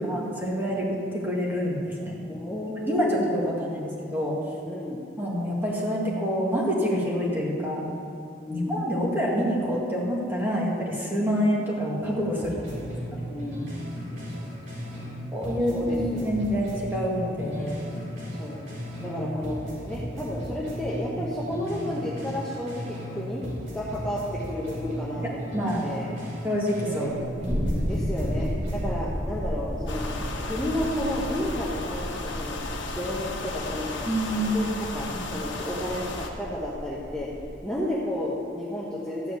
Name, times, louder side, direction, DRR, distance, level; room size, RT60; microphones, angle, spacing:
voice 1, 0.0-2.2 2.8-4.3 5.2-7.9 8.5-12.6 15.3-17.8 18.9-19.2 25.2-25.8 26.4-27.5 27.8-28.0 34.0-34.8 35.1-35.4, equal, 10° right, -4 dB, 2.1 m, -27 dB
voice 2, 2.3-3.5 4.7-5.0 8.4-8.8 12.3-13.7 14.3-15.1 15.7-16.4 17.6-17.7 18.4-18.7 19.0-26.1 26.8-27.0 27.8-30.1 30.4-32.6 32.9-33.9 34.3-37.3 37.6-39.4, left 1 dB, 5° left, -7 dB, 1.2 m, -32 dB
sound 1, 12.4-15.2 15.4-19.2 19.4-23.2 23.4-27.2 27.4-28.9, equal, 75° right, 3.4 m, -36 dB
sound 2, 27.2-37.5, equal, 30° right, 1.7 m, -33 dB
sound 3, 29.9-36.3, left 2 dB, 70° left, 1.3 m, -35 dB
14.0 x 5.0 x 8.3 m, 2.4 s
head